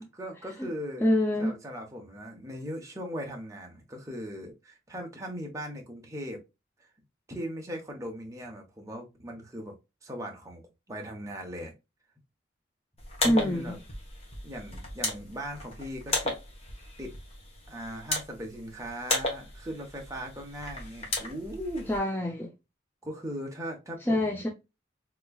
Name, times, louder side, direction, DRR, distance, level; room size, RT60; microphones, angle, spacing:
voice 1, 0.0-1.1 1.4-6.4 6.8-6.9 7.3-9.8 10.0-11.7 13.2-13.8 14.4-16.4 17.0-17.1 17.7-21.9 23.0-24.5, equal, 15° right, 0.9 m, -39 dB
voice 2, 1.0-1.5 13.2-13.7 21.9-22.5 24.1-24.5, left 1 dB, 10° left, 0.4 m, -25 dB
sound 1, 13.0-22.0, left 2 dB, 35° left, 1.1 m, -35 dB
3.6 x 3.0 x 2.2 m
head